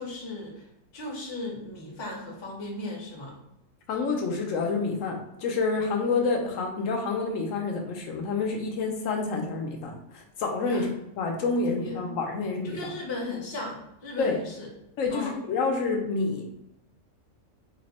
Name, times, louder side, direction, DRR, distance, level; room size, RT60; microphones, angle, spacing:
voice 1, 0.0-3.4 10.7-10.9 11.8-12.2 12.6-14.7 15.1-15.4, left 2 dB, 25° left, -2 dB, 0.6 m, -36 dB
voice 2, 3.9-12.9 14.2-14.4 15.0-16.4, left 4 dB, 75° left, 2 dB, 0.9 m, -28 dB
2.9 x 2.0 x 3.9 m, 0.85 s
omnidirectional pair, 1.4 m